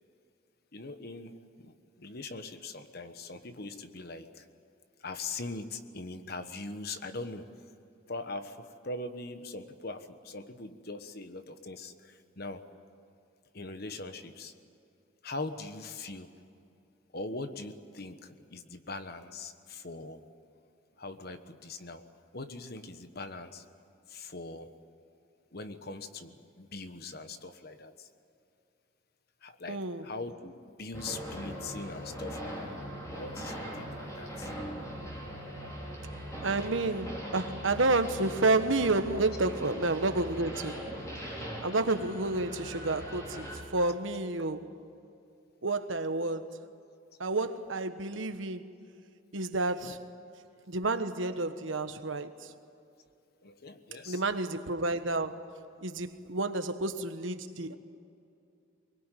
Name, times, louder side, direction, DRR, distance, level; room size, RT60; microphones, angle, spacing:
voice 1, 0.7-4.4 5.0-7.4 8.1-12.6 13.5-14.5 15.2-16.3 17.1-20.2 21.0-22.0 22.3-23.6 24.1-24.7 25.5-28.1 29.4-32.7 33.1-34.5 53.4-54.2, left 3 dB, 50° left, 1.3 m, -41 dB
voice 2, 29.7-30.0 36.4-40.8 41.6-43.5 43.7-44.7 45.6-46.5 47.2-48.6 49.3-50.0 50.7-52.3 54.1-55.5 55.8-57.8, right 2 dB, 75° right, 1.3 m, -30 dB
sound 1, 30.9-43.6, equal, 15° left, 5.0 m, -40 dB
23.5 x 21.0 x 9.3 m
head